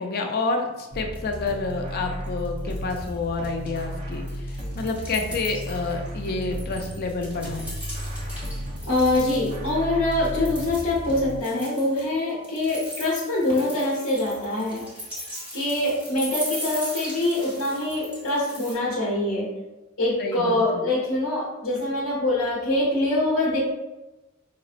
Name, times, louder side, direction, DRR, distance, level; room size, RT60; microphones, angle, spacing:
voice 1, 0.0-7.7 20.2-20.8, left 3 dB, 50° left, 4 dB, 0.4 m, -29 dB
sound 1, 0.8-0.9 1.1-1.7 2.0-3.1 3.4-9.7 10.1-18.7, equal, 5° right, 1.0 m, -39 dB
sound 2, 0.9-11.4, equal, 30° right, 0.5 m, -34 dB
voice 2, 8.9-14.8 15.5-19.5 20.0-23.6, left 1 dB, 70° left, -6 dB, 0.8 m, -24 dB
4.9 x 2.0 x 2.4 m, 1.1 s
head